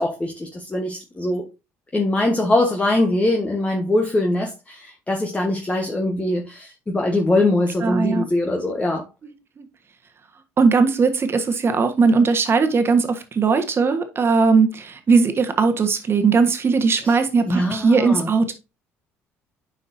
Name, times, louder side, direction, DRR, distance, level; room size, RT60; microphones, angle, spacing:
voice 1, 0.0-1.4 1.9-9.1 17.0-17.2 17.5-18.3, left 1 dB, 20° left, 1.4 m, -22 dB
voice 2, 7.8-8.2 9.2-9.7 10.6-18.5, right 4 dB, 40° right, 1.5 m, -19 dB
9.5 x 5.0 x 2.7 m
supercardioid pair, 70°, 6 cm